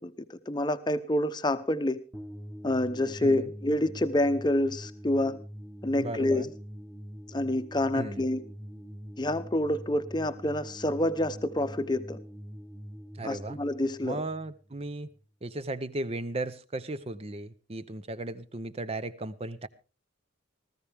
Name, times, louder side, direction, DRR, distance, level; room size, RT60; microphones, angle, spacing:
voice 1, 0.0-2.0 2.6-5.4 5.8-6.5 7.3-8.4 9.2-12.2 13.2-14.2, left 1 dB, 20° left, 0.8 m, -28 dB
sound 1, 2.1-15.2, equal, 5° right, 1.3 m, -44 dB
voice 2, 6.0-6.5 7.9-8.3 13.2-13.6 14.0-15.1 15.4-19.7, right 2 dB, 30° right, 0.7 m, -36 dB
19.0 x 14.5 x 3.5 m
head